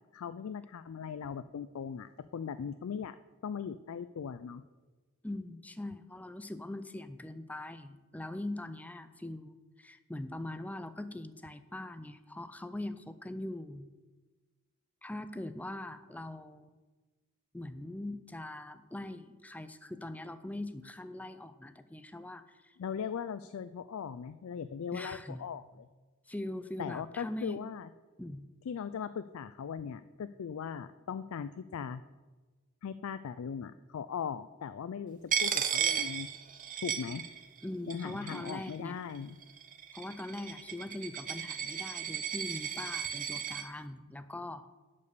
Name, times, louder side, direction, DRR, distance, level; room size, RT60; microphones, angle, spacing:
voice 1, 0.1-3.2 3.4-4.6 22.8-25.8 26.8-27.9 28.7-32.0 32.8-36.3 36.8-37.2 37.9-39.4, left 7 dB, 70° left, 12 dB, 0.4 m, -39 dB
voice 2, 5.2-13.9 15.0-16.8 17.5-22.7 24.9-25.5 26.3-27.6 28.2-28.5 37.6-39.0 39.9-44.6, left 1 dB, 5° left, 11 dB, 0.5 m, -42 dB
Coin (dropping), 35.3-37.6 37.9-38.7 39.4-43.6, right 8 dB, 40° right, 0.8 m, -35 dB
10.5 x 5.4 x 6.7 m, 1.3 s
head